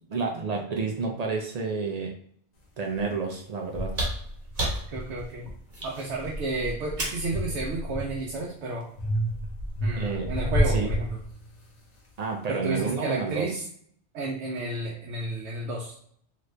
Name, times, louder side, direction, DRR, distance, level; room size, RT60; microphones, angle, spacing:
voice 1, 0.1-2.1 2.8-3.9 10.0-10.3 10.7-10.9 12.2-13.6, right 4 dB, 60° right, 1 dB, 0.4 m, -30 dB
sound 1, 2.9-3.0 3.7-5.6 6.0-8.4 9.0-11.7, equal, 45° left, 0.7 m, -30 dB
sound 2, 3.9-7.3 8.7-8.8, right 1 dB, 40° right, 1.0 m, -32 dB
voice 2, 4.9-5.5 5.8-8.9 9.8-11.2 12.5-13.6 14.1-15.9, right 2 dB, 80° right, -2 dB, 0.9 m, -32 dB
2.8 x 2.5 x 3.2 m, 0.63 s
omnidirectional pair, 1.1 m